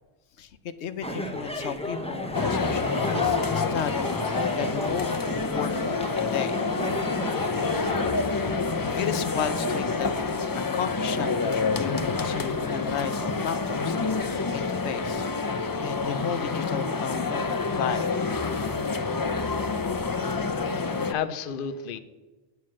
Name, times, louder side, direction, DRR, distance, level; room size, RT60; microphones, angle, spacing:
voice 1, 0.4-5.1 5.5-5.8 6.2-6.7 8.9-10.1 10.5-11.9 12.2-18.1, left 8 dB, 90° left, 12 dB, 0.9 m, -34 dB
sound 1, 1.0-8.2, left 1 dB, 5° left, 0.8 m, -33 dB
sound 2, 2.3-21.1, left 4 dB, 35° left, 0.3 m, -28 dB
voice 2, 20.4-22.0, left 7 dB, 60° left, 10 dB, 0.8 m, -33 dB
9.4 x 5.8 x 7.5 m, 1.2 s
omnidirectional pair, 1.1 m